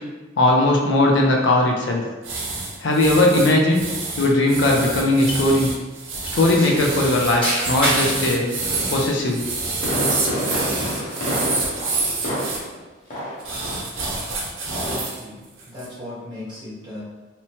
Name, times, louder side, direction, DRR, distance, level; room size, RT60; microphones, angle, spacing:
voice 1, 0.4-2.0 2.8-3.9 4.2-5.7 6.3-8.5 8.9-9.4, left 1 dB, 65° left, 0 dB, 0.4 m, -18 dB
sound 1, 2.2-12.6 13.4-15.2 15.6-15.9, right 3 dB, 85° right, 0.6 m, -27 dB
sound 2, 6.2-8.2 8.8-9.9 10.2-11.1, right 1 dB, 5° left, 0.9 m, -28 dB
Fireworks, 9.6-12.8 13.1-13.5 13.8-13.9, equal, 40° left, 0.8 m, -27 dB
voice 2, 14.7-17.0, left 1 dB, 25° right, -10 dB, 1.0 m, -37 dB
2.8 x 2.1 x 2.8 m, 1.2 s
head